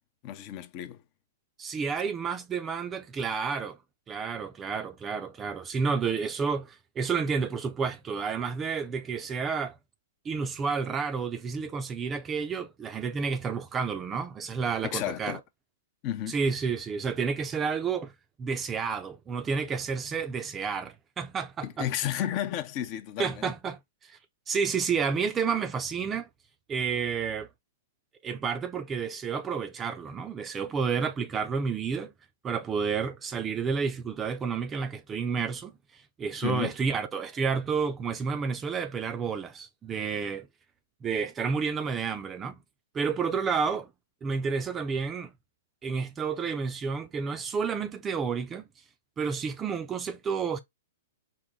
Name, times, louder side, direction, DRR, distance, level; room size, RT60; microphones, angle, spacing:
voice 1, 0.2-1.0 9.5-9.6 10.7-10.8 14.9-15.4 16.0-16.4 21.6-23.5 36.4-36.7, left 11 dB, 40° left, 0.7 m, -32 dB
voice 2, 1.6-3.8 4.1-9.8 10.2-15.4 16.3-18.1 18.4-21.9 23.2-23.8 24.5-26.3 26.7-27.5 28.2-32.1 32.4-35.7 36.2-40.5 41.0-42.5 42.9-43.9 44.2-45.3 45.8-48.6 49.2-50.6, right 5 dB, 20° right, 0.6 m, -30 dB
4.6 x 2.1 x 3.7 m
hypercardioid pair, 130°, 0 cm